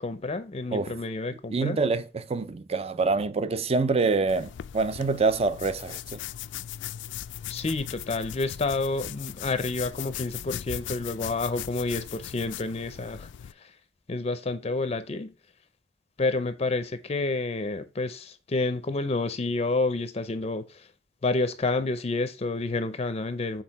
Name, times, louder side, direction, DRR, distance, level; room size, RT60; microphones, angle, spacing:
voice 1, 0.0-1.8 7.5-13.3 14.1-15.3 16.2-20.9 21.2-23.6, left 3 dB, 35° left, 0.5 m, -29 dB
voice 2, 1.5-6.2, right 4 dB, 35° right, 0.5 m, -26 dB
sound 1, 4.3-13.5, left 11 dB, 85° left, 0.3 m, -39 dB
6.3 x 4.1 x 4.0 m
head